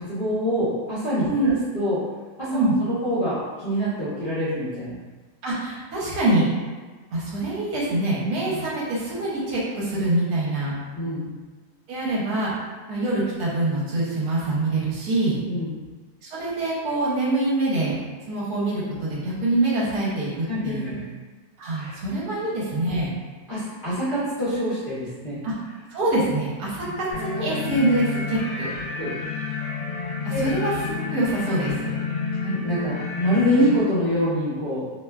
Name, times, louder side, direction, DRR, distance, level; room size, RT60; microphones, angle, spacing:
voice 1, 0.0-2.0 2.4-4.9 8.5-8.6 10.9-11.3 15.5-15.7 20.5-21.1 21.8-22.0 23.5-25.4 26.9-27.0 29.0-29.1 30.3-30.5 32.4-34.9, equal, 40° left, -13 dB, 0.8 m, -25 dB
voice 2, 5.4-6.5 7.1-10.7 11.9-12.5 12.9-15.4 16.2-17.9 18.3-21.0 21.6-23.1 25.4-25.5 25.9-28.7 30.2-30.7 31.1-31.9, right 2 dB, 70° right, -6 dB, 1.2 m, -25 dB
sound 1, 27.1-33.8, left 5 dB, 75° left, 1.1 m, -30 dB
2.8 x 2.2 x 2.2 m, 1.4 s
omnidirectional pair, 1.8 m